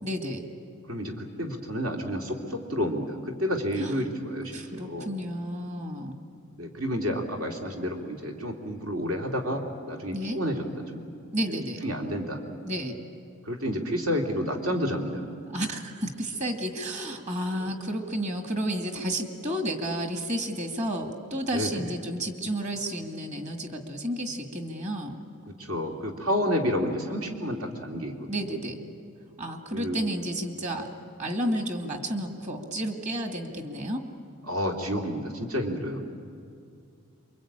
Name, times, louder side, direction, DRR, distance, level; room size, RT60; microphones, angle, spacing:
voice 1, 0.0-0.5 3.8-3.9 4.5-6.2 10.1-10.4 11.3-11.8 12.7-12.9 15.5-25.2 28.3-28.8 29.4-30.9 31.2-34.0, equal, 35° right, 5 dB, 2.2 m, -31 dB
voice 2, 0.9-5.1 6.6-10.6 10.9-11.1 11.5-11.6 11.8-12.4 13.4-15.3 17.6-17.7 21.5-21.9 25.5-28.3 29.7-30.0 34.5-36.0, equal, 75° right, 2 dB, 3.0 m, -30 dB
27.5 x 23.5 x 8.9 m, 2.4 s
head